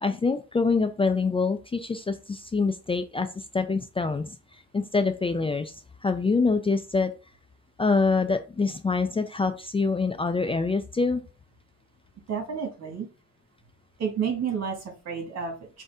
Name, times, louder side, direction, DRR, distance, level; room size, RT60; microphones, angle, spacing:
voice 1, 0.0-4.4 4.7-5.7 6.0-7.1 7.8-11.2, left 4 dB, 20° left, 8 dB, 0.4 m, -25 dB
voice 2, 12.3-13.1 14.0-14.8 15.1-15.5, right 7 dB, 60° right, 2 dB, 1.9 m, -29 dB
5.3 x 2.7 x 3.6 m, 0.33 s
cardioid pair, 90°, 30 cm